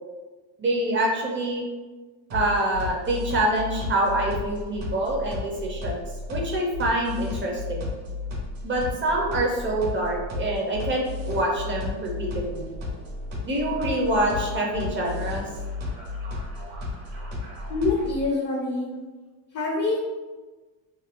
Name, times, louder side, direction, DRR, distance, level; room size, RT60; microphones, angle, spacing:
voice 1, 0.6-1.6 2.3-6.0 6.3-7.9 8.6-12.7 13.4-15.4, right 1 dB, 25° right, -1 dB, 0.5 m, -26 dB
sound 1, 2.3-18.3, left 3 dB, 65° right, 1.1 m, -33 dB
voice 2, 17.7-18.9 19.5-20.0, left 3 dB, 35° left, -2 dB, 0.4 m, -25 dB
2.9 x 2.4 x 2.4 m, 1.3 s
cardioid pair, 115°, 50 cm